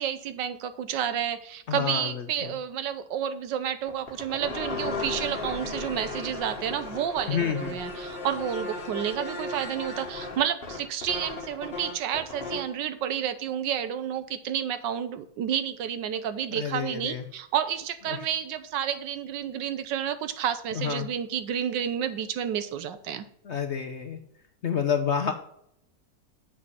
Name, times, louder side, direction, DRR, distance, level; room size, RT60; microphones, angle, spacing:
voice 1, 0.0-23.2, right 9 dB, 90° right, 11 dB, 1.5 m, -30 dB
voice 2, 1.7-2.5 7.3-7.8 16.5-17.2 18.1-18.2 20.7-21.1 23.4-24.2 24.6-25.3, left 7 dB, 60° left, 7 dB, 0.7 m, -29 dB
sound 1, 3.9-12.7, left 3 dB, 35° left, 1.3 m, -36 dB
7.8 x 6.3 x 5.6 m, 0.72 s
omnidirectional pair, 1.9 m